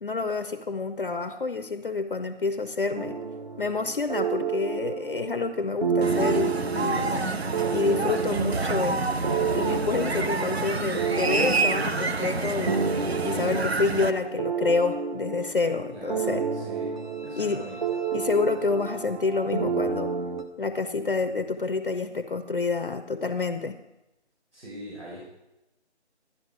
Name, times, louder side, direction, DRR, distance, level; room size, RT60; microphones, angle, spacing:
voice 1, 0.0-3.2 3.6-7.4 7.7-9.1 9.5-12.8 13.2-16.4 17.4-17.6 18.1-20.1 20.6-23.8, left 4 dB, 50° left, 9 dB, 0.6 m, -28 dB
sound 1, 2.9-20.4, right 5 dB, 40° right, 1.1 m, -30 dB
sound 2, 6.0-14.1, right 3 dB, 65° right, 0.9 m, -28 dB
voice 2, 15.9-17.8 24.5-25.2, equal, 80° right, -5 dB, 5.5 m, -42 dB
13.0 x 10.5 x 4.8 m, 0.95 s
figure-of-eight pair, 165°, 34 cm